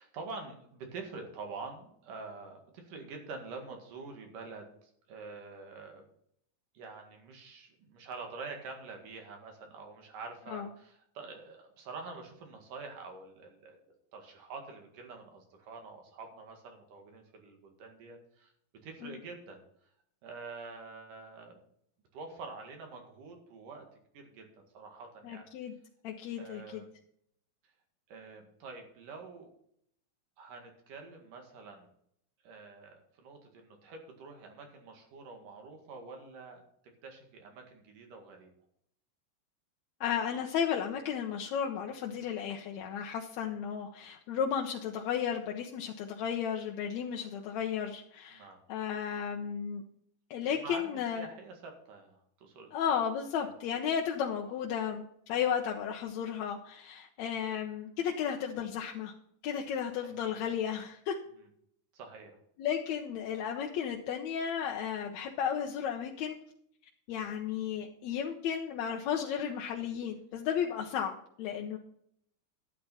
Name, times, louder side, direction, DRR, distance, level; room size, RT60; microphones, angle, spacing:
voice 1, 0.0-6.1 6.8-13.8 14.1-18.5 18.8-19.6 20.2-21.6 22.1-23.8 24.1-25.5 26.4-26.9 28.1-29.5 30.4-31.9 32.4-36.6 37.0-38.5 48.3-48.6 50.6-52.7 53.4-53.5 57.2-57.3 59.9-60.2 61.4-61.5 61.9-62.4 67.1-67.3, right 4 dB, 80° right, 3 dB, 3.6 m, -46 dB
voice 2, 25.2-25.7 26.0-26.8 40.0-49.8 50.3-51.3 52.7-55.0 55.3-59.1 59.4-61.2 62.6-66.4 67.1-71.1 71.4-71.8, left 8 dB, 70° left, 1 dB, 2.0 m, -34 dB
11.5 x 9.2 x 4.2 m, 0.70 s
omnidirectional pair, 3.7 m